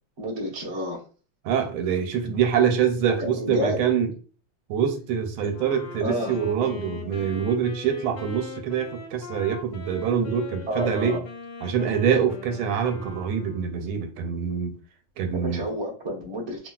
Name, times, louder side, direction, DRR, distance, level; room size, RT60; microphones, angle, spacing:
voice 1, 0.2-1.0 3.2-3.8 5.4-5.6 6.0-6.4 10.7-11.2 15.4-16.7, equal, 30° right, -5 dB, 0.4 m, -30 dB
voice 2, 1.4-4.1 4.7-11.2 11.6-14.7 15.2-15.6, right 7 dB, 90° right, 5 dB, 1.4 m, -25 dB
Wind instrument woodwind instrument, 5.5-13.8, left 4 dB, 85° left, 1.5 m, -41 dB
3.5 x 2.3 x 2.2 m, 0.39 s
omnidirectional pair, 2.3 m